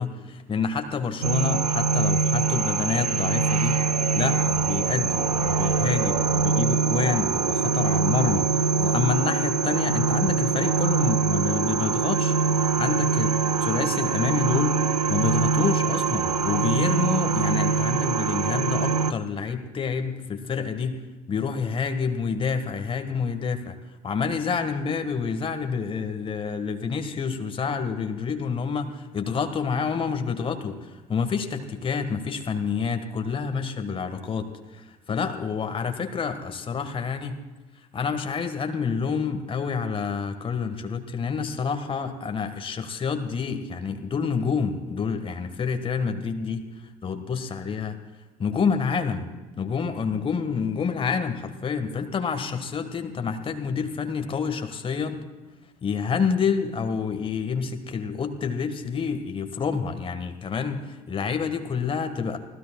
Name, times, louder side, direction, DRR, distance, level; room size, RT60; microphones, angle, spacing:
voice 1, 0.0-3.8 4.1-12.3 12.6-13.3 13.7-23.8 24.0-37.4 37.9-46.6 47.0-48.0 48.4-49.2 49.6-55.2 55.8-62.4, left 5 dB, 25° left, 7 dB, 1.6 m, -28 dB
sound 1, 1.2-19.1, right 5 dB, 85° right, 0.5 m, -23 dB
sound 2, 4.1-9.4, left 4 dB, 45° left, 1.5 m, -47 dB
29.5 x 18.0 x 2.3 m, 1.2 s
figure-of-eight pair, 65°, 19 cm